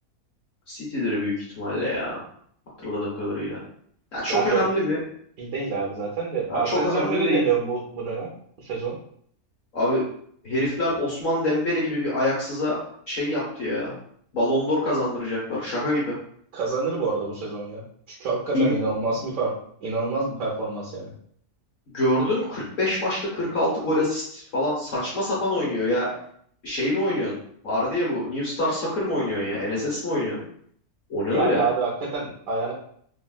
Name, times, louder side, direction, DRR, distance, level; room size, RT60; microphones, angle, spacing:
voice 1, 0.7-2.2 2.8-3.6 4.1-5.0 6.5-7.4 9.7-10.0 10.4-12.8 13.1-13.9 14.3-16.2 18.5-18.7 21.9-26.1 26.6-27.4 27.6-30.4 31.1-31.6, left 1 dB, 60° left, -7 dB, 1.2 m, -25 dB
voice 2, 4.3-4.7 5.4-8.3 8.6-9.0 16.5-19.5 19.8-21.1 31.3-32.7, right 4 dB, 70° right, -4 dB, 1.1 m, -27 dB
3.4 x 2.2 x 2.3 m, 0.63 s
omnidirectional pair, 1.6 m